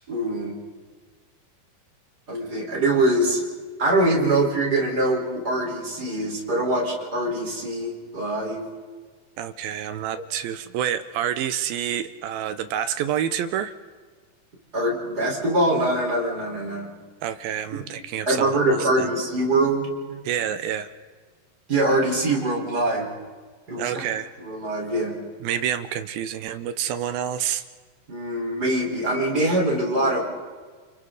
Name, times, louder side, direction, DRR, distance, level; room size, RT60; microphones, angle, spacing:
voice 1, 0.1-0.5 2.3-3.5 3.8-8.6 14.7-16.9 18.3-20.2 21.7-23.1 23.7-24.0 24.4-25.1 28.1-30.3, right 1 dB, 20° right, -1 dB, 4.6 m, -23 dB
voice 2, 9.4-13.7 17.2-19.1 20.2-20.9 23.8-24.3 25.4-27.6, right 10 dB, 80° right, 10 dB, 2.3 m, -28 dB
29.0 x 28.5 x 4.0 m, 1.5 s
omnidirectional pair, 5.0 m